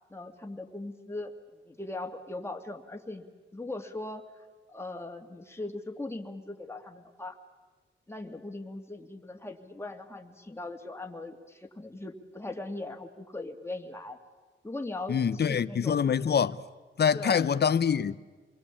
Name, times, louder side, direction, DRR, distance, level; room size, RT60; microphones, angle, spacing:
voice 1, 0.1-1.3 1.7-3.3 3.5-4.2 4.7-7.4 8.1-14.2 14.6-16.3 17.1-17.4, left 2 dB, 10° left, 2.5 m, -39 dB
voice 2, 15.1-16.6 17.0-18.2, left 7 dB, 55° left, 0.8 m, -25 dB
28.0 x 21.5 x 8.5 m
wide cardioid pair, 95°, 20 cm